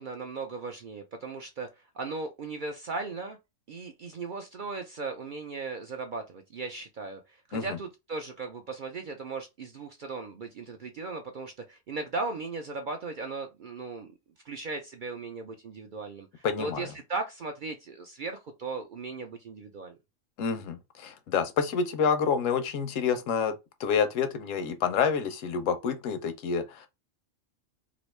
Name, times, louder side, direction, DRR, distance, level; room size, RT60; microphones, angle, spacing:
voice 1, 0.0-3.4 3.7-14.1 14.4-20.0, right 3 dB, 60° right, 0.5 m, -37 dB
voice 2, 16.4-16.9 20.4-26.9, left 6 dB, 80° left, 1.0 m, -28 dB
3.0 x 2.6 x 3.1 m
omnidirectional pair, 1.3 m